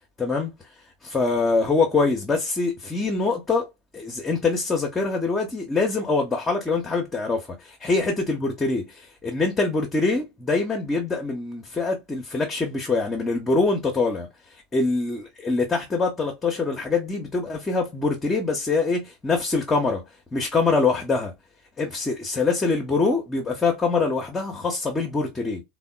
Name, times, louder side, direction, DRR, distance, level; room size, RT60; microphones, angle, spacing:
voice 1, 0.2-0.5 1.0-3.7 3.9-20.0 20.3-21.3 21.8-25.6, left 3 dB, 20° left, 0.6 m, -24 dB
3.4 x 2.1 x 2.3 m
figure-of-eight pair, 80°, 0 cm